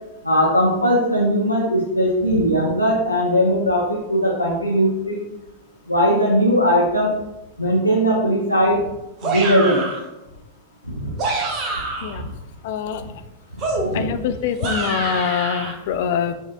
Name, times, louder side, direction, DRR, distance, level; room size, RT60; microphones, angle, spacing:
voice 1, 0.2-5.2 5.9-7.1 7.6-8.8 9.2-9.8 10.9-11.1 13.1-13.2 13.8-14.0, equal, 90° left, -5 dB, 0.6 m, -19 dB
sound 1, 9.2-10.1 11.0-12.2 13.6-15.7, right 3 dB, 35° right, 0.8 m, -26 dB
voice 2, 12.6-13.0 13.9-16.3, left 7 dB, 55° left, 9 dB, 0.3 m, -24 dB
6.0 x 2.7 x 2.5 m, 0.96 s
figure-of-eight pair, 90°, 0 cm